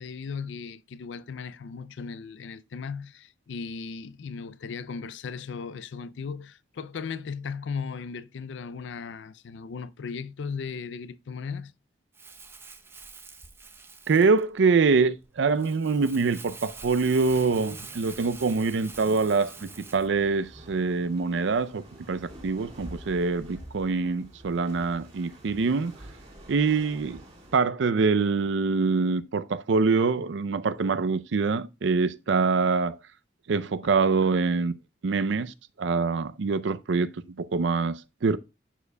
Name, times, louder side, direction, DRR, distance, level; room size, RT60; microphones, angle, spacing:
voice 1, 0.0-11.7, left 5 dB, 75° left, 0.4 m, -37 dB
Crumpling crinkling, 12.1-20.1, right 4 dB, 10° right, 0.5 m, -46 dB
voice 2, 14.1-25.9 26.5-27.2 27.5-33.0 33.5-34.7 35.0-38.4, right 4 dB, 75° right, 0.5 m, -25 dB
sound 1, 17.2-27.6, right 1 dB, 30° right, 2.0 m, -48 dB
11.0 x 4.8 x 2.2 m
head